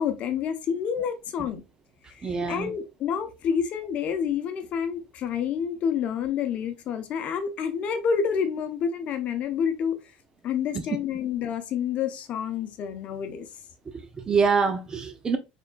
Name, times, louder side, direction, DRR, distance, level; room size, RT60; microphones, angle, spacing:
voice 1, 0.0-1.6 2.1-10.0 10.4-13.5, left 7 dB, 45° left, 0.8 m, -28 dB
voice 2, 2.2-2.7 10.7-10.8 13.9-15.4, right 5 dB, 20° right, 0.6 m, -25 dB
4.2 x 3.6 x 2.3 m
cardioid pair, 125°, 3 cm